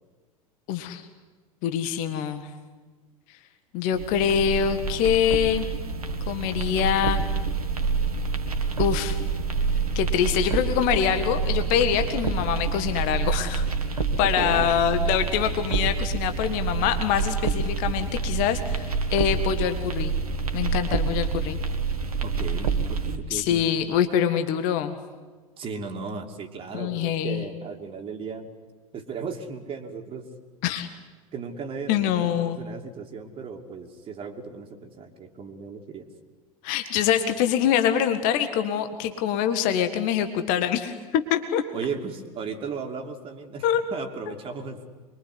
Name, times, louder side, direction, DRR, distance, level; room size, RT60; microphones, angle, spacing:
voice 1, 0.7-1.1 1.6-2.5 3.7-5.7 6.3-7.2 8.8-9.2 9.9-13.7 14.2-20.1 20.5-21.6 23.3-25.0 26.7-27.4 30.6-30.9 31.9-32.6 36.6-41.6 43.6-43.8, left 9 dB, 45° left, 9 dB, 1.8 m, -24 dB
sound 1, 3.9-23.1, right 4 dB, 75° right, 2.0 m, -27 dB
voice 2, 14.2-14.7 22.2-23.7 25.6-28.5 28.9-30.3 31.3-36.1 41.7-43.7 43.9-44.8, right 5 dB, 30° right, 3 dB, 2.7 m, -36 dB
25.5 x 23.0 x 9.8 m, 1.4 s
figure-of-eight pair, 80°, 19 cm